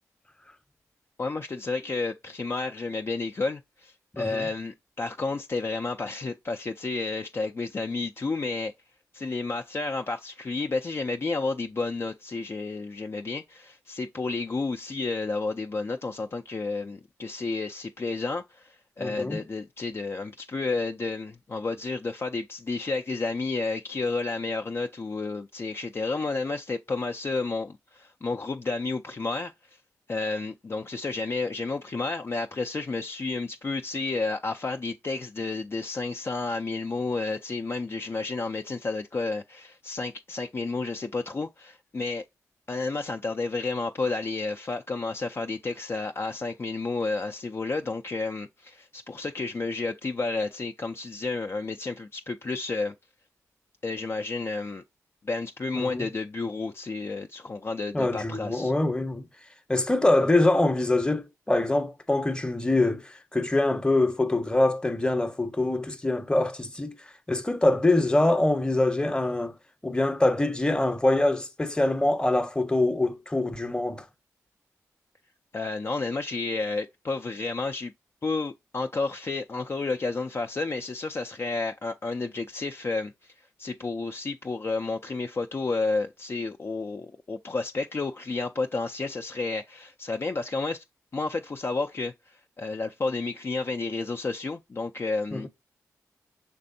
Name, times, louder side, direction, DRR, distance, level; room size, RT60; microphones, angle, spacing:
voice 1, 1.2-8.7 9.1-29.8 30.1-42.2 42.7-52.9 53.8-54.8 55.2-58.7 75.5-77.9 78.2-90.8 91.1-95.5, left 3 dB, 35° left, 0.4 m, -31 dB
voice 2, 4.1-4.5 19.0-19.4 55.8-56.1 57.9-59.3 59.7-66.9 67.3-69.5 69.8-74.0 95.3-95.4, left 2 dB, 15° left, 0.8 m, -24 dB
5.9 x 3.3 x 2.5 m
supercardioid pair, 40°, 7 cm